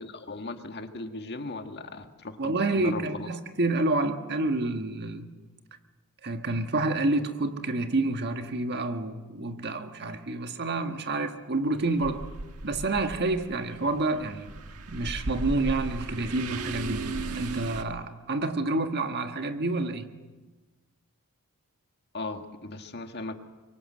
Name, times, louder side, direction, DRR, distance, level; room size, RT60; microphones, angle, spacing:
voice 1, 0.0-3.3 22.1-23.3, left 3 dB, 50° left, 1.7 m, -37 dB
voice 2, 2.4-5.3 6.2-12.2 12.6-14.5 14.9-17.1 17.3-20.1, right 2 dB, 50° right, 1.6 m, -28 dB
sound 1, 11.8-17.8, right 2 dB, 90° right, 1.5 m, -36 dB
24.5 x 23.5 x 7.8 m
head